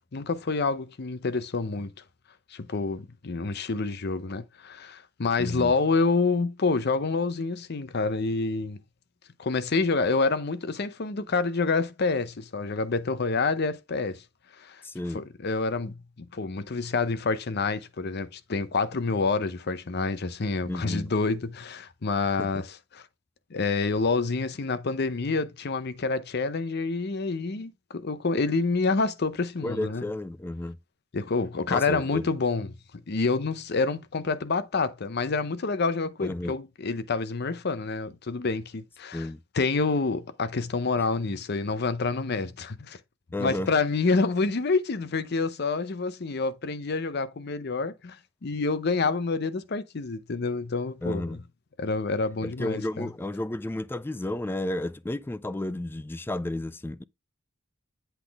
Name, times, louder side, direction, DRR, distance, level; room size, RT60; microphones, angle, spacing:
voice 1, 0.1-1.9 2.5-8.8 9.4-14.2 14.6-14.8 15.1-23.0 23.5-30.0 31.1-32.8 33.1-39.3 39.5-43.0 43.4-51.4 51.8-53.1, left 4 dB, 55° left, 0.7 m, -28 dB
voice 2, 5.4-5.7 14.8-15.2 20.7-21.1 22.4-22.5 29.6-30.8 31.7-32.2 36.2-36.6 39.1-39.4 43.3-43.7 51.0-51.4 52.4-57.0, left 1 dB, 10° left, 0.3 m, -32 dB
8.1 x 3.9 x 3.4 m
head